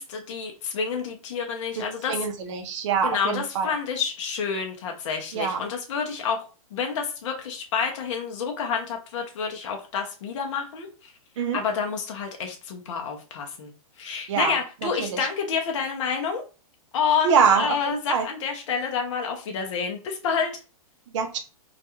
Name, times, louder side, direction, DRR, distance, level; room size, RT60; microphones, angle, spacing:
voice 1, 0.0-2.2 3.0-6.5 6.7-11.1 11.5-16.4 16.9-20.6, left 6 dB, 55° left, 2 dB, 0.5 m, -29 dB
voice 2, 1.8-3.7 5.3-5.6 11.4-11.6 14.3-14.5 15.0-15.2 17.2-18.3 21.1-21.4, right 6 dB, 55° right, 4 dB, 0.5 m, -24 dB
2.3 x 2.2 x 2.9 m, 0.33 s
hypercardioid pair, 160°, 19 cm